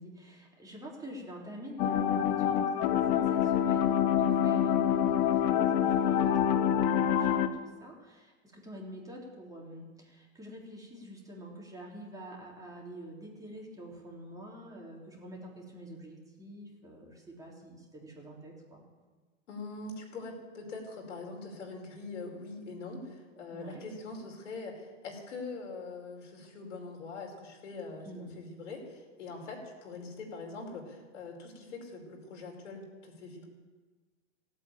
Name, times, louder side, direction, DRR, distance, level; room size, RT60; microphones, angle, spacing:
voice 1, 0.0-18.8 23.5-23.8 28.0-28.4, equal, 10° right, -3 dB, 3.8 m, -46 dB
sound 1, 1.8-7.5, left 9 dB, 45° left, 1.1 m, -26 dB
voice 2, 19.5-33.5, left 3 dB, 75° left, 0 dB, 5.1 m, -43 dB
17.0 x 8.8 x 9.1 m, 1.3 s
hypercardioid pair, 125°, 37 cm